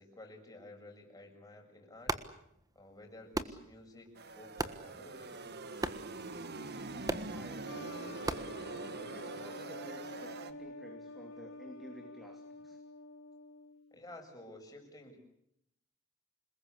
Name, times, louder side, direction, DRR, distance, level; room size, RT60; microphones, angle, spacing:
voice 1, 0.0-2.2 2.8-5.5 12.5-12.6 13.9-15.2, left 1 dB, 15° left, 2 dB, 6.9 m, -53 dB
sound 1, 1.9-9.3, right 2 dB, 15° right, 1.4 m, -42 dB
sound 2, 4.2-10.5, right 3 dB, 50° right, 1.6 m, -44 dB
voice 2, 7.3-8.0 9.1-12.8, equal, ahead, 4 dB, 2.9 m, -53 dB
sound 3, 7.7-14.0, left 2 dB, 80° left, 3.5 m, -48 dB
28.0 x 21.0 x 8.3 m, 0.77 s
head